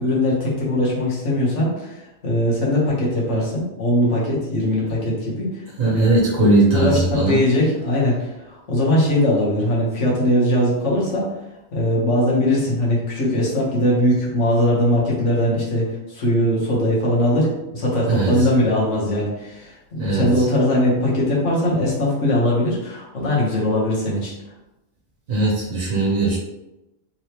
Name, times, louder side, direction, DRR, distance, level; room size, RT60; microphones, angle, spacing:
voice 1, 0.0-11.2 11.7-24.3, left 1 dB, 65° left, -5 dB, 1.5 m, -20 dB
voice 2, 5.8-7.4 18.1-18.5 20.0-20.4 25.3-26.4, right 2 dB, 85° right, -6 dB, 1.4 m, -19 dB
3.8 x 3.3 x 2.9 m, 0.95 s
omnidirectional pair, 1.3 m